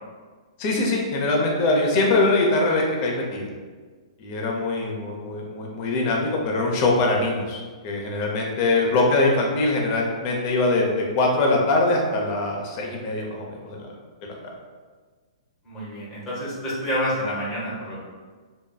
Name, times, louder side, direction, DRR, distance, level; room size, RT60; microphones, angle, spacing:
voice 1, 0.6-3.5 4.2-13.8 14.2-14.3, left 2 dB, 40° left, 0 dB, 0.6 m, -22 dB
voice 2, 15.6-18.0, equal, 20° left, -8 dB, 0.9 m, -28 dB
2.8 x 2.3 x 2.2 m, 1.5 s
hypercardioid pair, 125°, 3 cm